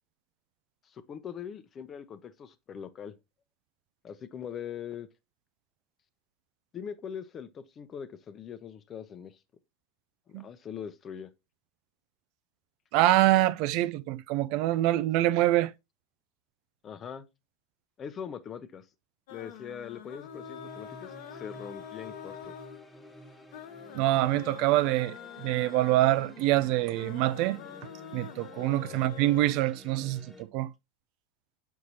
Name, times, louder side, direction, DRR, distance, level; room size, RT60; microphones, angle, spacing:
voice 1, 0.9-3.1 4.0-5.1 6.7-9.4 10.3-11.3 16.8-17.3 18.0-18.8 19.3-22.5 28.8-29.0, left 8 dB, 35° left, 0.7 m, -41 dB
voice 2, 12.9-15.7 23.9-27.6 28.1-30.7, right 15 dB, 60° right, 0.3 m, -25 dB
sound 1, 19.3-29.4, left 9 dB, 70° left, 0.8 m, -46 dB
sound 2, 20.2-30.4, left 1 dB, 10° left, 1.3 m, -51 dB
6.4 x 5.6 x 2.8 m
hypercardioid pair, 95°, 0 cm